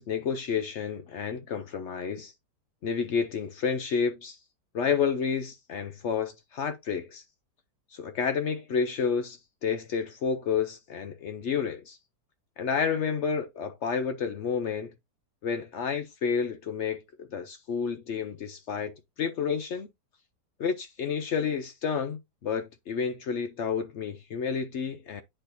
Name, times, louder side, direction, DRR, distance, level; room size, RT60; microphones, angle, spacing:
voice 1, 0.0-2.3 2.8-4.4 4.7-7.2 7.9-12.0 12.6-14.9 15.4-19.9 20.6-25.2, left 6 dB, 65° left, 0.7 m, -30 dB
9.8 x 4.3 x 2.6 m
omnidirectional pair, 1.8 m